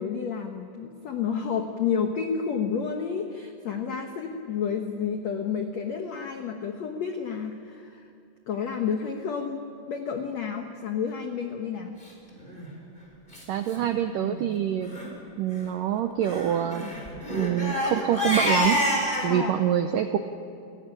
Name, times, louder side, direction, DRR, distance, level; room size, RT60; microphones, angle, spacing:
voice 1, 0.0-8.1 8.5-12.0 19.3-19.5, left 6 dB, 85° left, 5 dB, 1.5 m, -30 dB
Crying sobbing, 12.4-12.7 13.3-13.4 13.7-13.8 14.1-14.4 14.8-15.1 16.2-19.3, equal, 10° left, 4.0 m, -27 dB
voice 2, 13.5-15.0 15.4-16.8 17.3-18.8 19.2-20.2, right 10 dB, 90° right, 8 dB, 1.9 m, -26 dB
29.5 x 15.5 x 10.0 m, 2.5 s
omnidirectional pair, 5.0 m